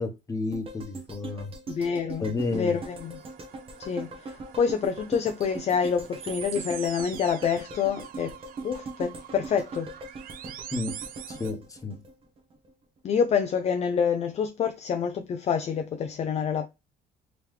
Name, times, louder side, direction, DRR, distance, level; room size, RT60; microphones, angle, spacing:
voice 1, 0.0-1.5 2.2-2.8 10.7-11.0 11.3-12.0, left 3 dB, 20° left, 1.0 m, -31 dB
sound 1, 0.5-12.7 13.1-13.2, right 3 dB, 35° right, 1.0 m, -41 dB
voice 2, 1.7-3.2 3.8-8.4 8.6-9.9 13.0-16.7, left 6 dB, 40° left, 0.4 m, -27 dB
sound 2, 2.4-11.5, right 10 dB, 60° right, 0.5 m, -44 dB
3.6 x 3.0 x 3.2 m
cardioid pair, 110°, 17 cm